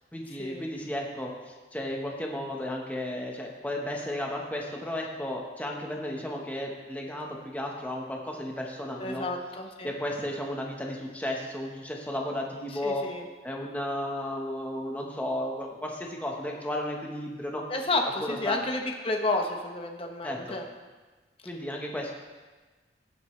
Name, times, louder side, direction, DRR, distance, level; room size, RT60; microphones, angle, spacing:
voice 1, 0.1-9.3 9.8-13.1 13.4-17.6 18.2-18.6 20.2-20.6 21.4-22.1, left 1 dB, 10° left, 0 dB, 1.1 m, -34 dB
voice 2, 9.0-9.9 12.8-13.2 17.7-20.7, left 2 dB, 30° left, 3 dB, 1.0 m, -31 dB
15.5 x 8.0 x 3.2 m, 1.3 s
head